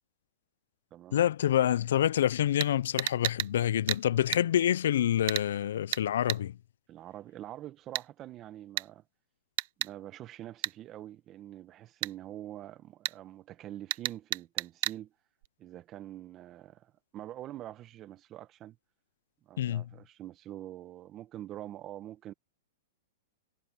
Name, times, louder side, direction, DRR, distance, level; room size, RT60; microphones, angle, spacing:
voice 1, 1.1-6.6 19.6-19.9, left 11 dB, 75° left, 0.5 m, -27 dB
sound 1, 2.6-2.7 3.0-3.5 3.9-4.0 4.3-4.4 5.3-5.5 5.9-6.0 6.3-6.4 7.9-8.1 8.8-8.9 9.6-9.9 10.6-10.7 12.0-12.1 13.0-13.2 13.9-15.0 15.4-15.5, right 18 dB, 55° right, 0.7 m, -32 dB
voice 2, 6.9-9.0 9.8-15.1 15.6-18.8 19.4-22.3, right 13 dB, 30° right, 1.3 m, -45 dB
hypercardioid pair, 145°, 0 cm